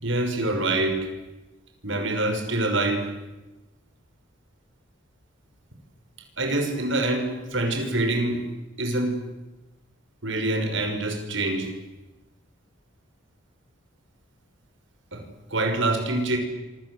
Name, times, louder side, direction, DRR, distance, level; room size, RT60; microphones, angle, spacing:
voice 1, 0.0-1.1 1.8-3.1 6.4-8.4 8.8-9.2 10.2-11.7 15.1-15.2 15.5-16.4, right 2 dB, 65° right, 5 dB, 5.9 m, -25 dB
27.5 x 25.5 x 8.1 m, 1.1 s
head